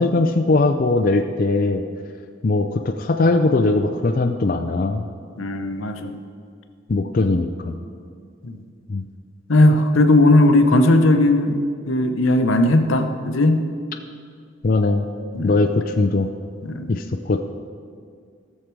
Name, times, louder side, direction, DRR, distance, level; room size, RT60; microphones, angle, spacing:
voice 1, 0.0-1.8 2.4-5.0 6.9-7.8 8.9-9.0 14.6-15.1 15.4-16.3 16.9-17.4, left 3 dB, 45° left, 5 dB, 0.4 m, -20 dB
voice 2, 5.4-6.2 8.4-8.6 9.5-11.6 11.9-13.6 15.3-15.6 16.6-16.9, left 1 dB, 75° left, 7 dB, 0.8 m, -17 dB
17.5 x 6.6 x 4.6 m, 2.2 s
head